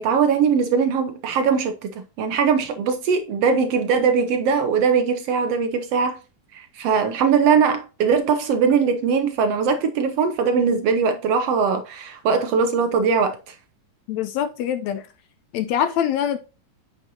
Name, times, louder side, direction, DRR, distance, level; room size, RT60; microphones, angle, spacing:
voice 1, 0.0-6.2 6.5-13.5, right 6 dB, 75° right, 1.4 m, -21 dB
voice 2, 14.1-15.1 15.5-16.4, left 9 dB, 80° left, 1.7 m, -24 dB
9.2 x 6.3 x 2.7 m
omnidirectional pair, 3.7 m